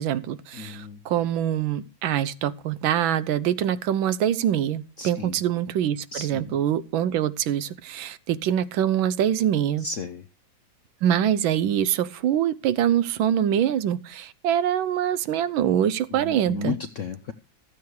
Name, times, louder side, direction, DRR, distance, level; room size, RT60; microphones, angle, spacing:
voice 1, 0.0-9.9 11.0-16.8, right 10 dB, 85° right, 1.5 m, -24 dB
voice 2, 0.5-1.0 5.0-5.4 6.1-6.6 9.8-10.2 16.1-17.3, left 4 dB, 70° left, 0.7 m, -33 dB
14.0 x 8.3 x 4.6 m
omnidirectional pair, 2.1 m